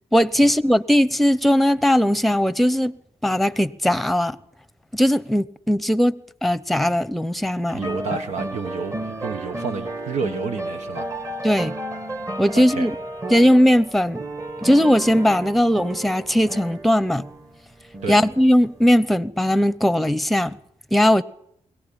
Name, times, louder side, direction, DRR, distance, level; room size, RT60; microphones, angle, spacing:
voice 1, 0.1-2.9 3.2-4.4 4.9-7.8 11.4-11.7 12.4-12.9 13.3-14.2 14.6-17.3 18.1-20.6 20.9-21.2, equal, ahead, 1.0 m, -19 dB
sound 1, 7.7-19.0, right 1 dB, 30° right, 2.4 m, -33 dB
voice 2, 7.7-11.1 12.5-12.9 18.0-18.2, right 5 dB, 85° right, 1.4 m, -30 dB
22.0 x 18.0 x 8.9 m
cardioid pair, 75°, 12 cm